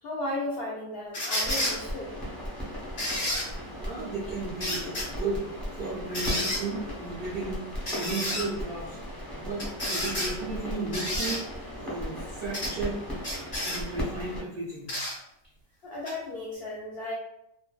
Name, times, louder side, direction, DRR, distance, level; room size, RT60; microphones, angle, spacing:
voice 1, 0.0-2.1 15.8-17.1, left 1 dB, 80° left, -3 dB, 0.5 m, -35 dB
sound 1, 1.1-1.8 3.0-3.5 4.6-5.1 6.1-6.6 7.9-8.4 9.6-10.3 10.9-11.4 12.5-12.7 13.2-13.8 14.9-15.1 16.0-16.1, left 1 dB, 40° left, 0.8 m, -30 dB
sound 2, 1.4-14.4, equal, ahead, 0.5 m, -37 dB
voice 2, 3.8-5.4 5.7-9.0 9.3-11.4 11.8-13.0 13.6-15.0, right 3 dB, 65° right, -6 dB, 0.6 m, -34 dB
2.5 x 2.1 x 2.3 m, 0.82 s
omnidirectional pair, 1.5 m